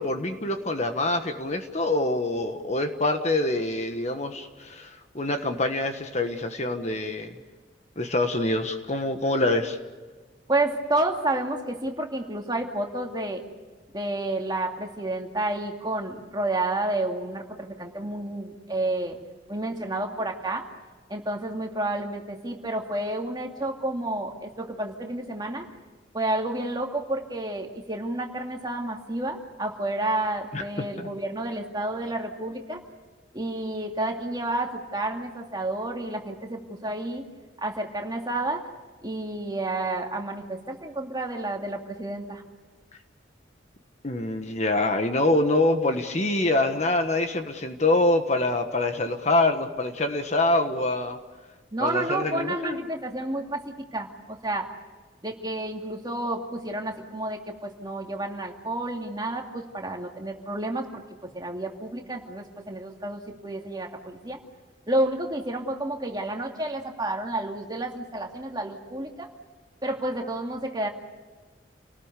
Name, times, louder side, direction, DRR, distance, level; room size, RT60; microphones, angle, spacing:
voice 1, 0.0-7.4 7.9-9.8 30.5-31.1 44.0-51.2 51.8-52.9, left 2 dB, 40° left, 6 dB, 1.5 m, -25 dB
voice 2, 10.5-13.4 13.9-19.2 19.5-20.7 21.1-25.6 26.1-32.8 33.3-37.2 37.6-38.6 39.0-42.4 51.7-54.7 55.2-61.0 61.3-64.4 64.9-69.3 69.8-70.9, right 1 dB, 20° right, 2 dB, 2.5 m, -30 dB
29.0 x 19.0 x 8.3 m, 1.3 s
head